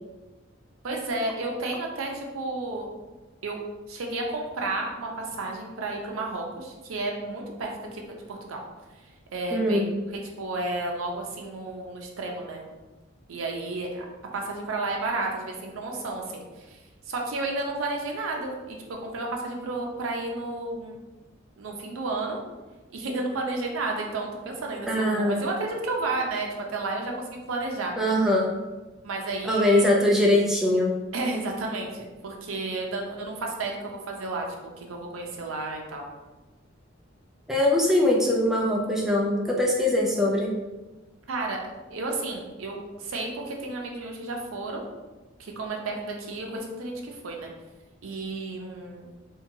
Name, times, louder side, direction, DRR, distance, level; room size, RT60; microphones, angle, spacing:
voice 1, 0.8-2.9 3.4-8.6 9.3-12.7 13.3-14.1 14.3-16.8 17.1-21.0 21.6-22.4 22.9-27.9 29.0-29.9 31.1-36.1 41.3-41.6 41.9-44.8 45.4-47.5 48.0-49.1, right 2 dB, 90° right, 1 dB, 0.5 m, -32 dB
voice 2, 9.5-9.9 24.9-25.4 28.0-28.5 29.4-30.9 37.5-40.5, left 1 dB, ahead, -2 dB, 0.3 m, -22 dB
2.8 x 2.2 x 2.6 m, 1.2 s
head